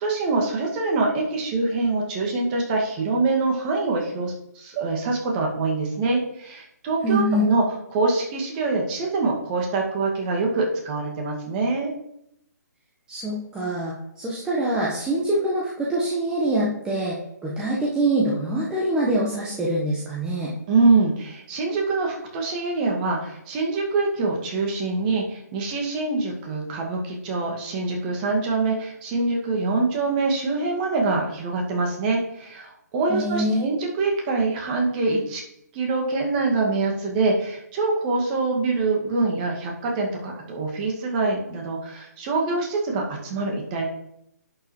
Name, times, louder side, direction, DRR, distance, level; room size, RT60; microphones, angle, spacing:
voice 1, 0.0-7.6 7.9-11.9 20.7-35.4 35.7-43.9, right 3 dB, 30° right, 0 dB, 2.0 m, -24 dB
voice 2, 7.0-7.5 13.1-17.2 17.4-20.5 33.1-33.6, right 1 dB, 10° right, -6 dB, 1.2 m, -24 dB
11.0 x 6.8 x 3.2 m, 0.77 s
figure-of-eight pair, 140°, 10 cm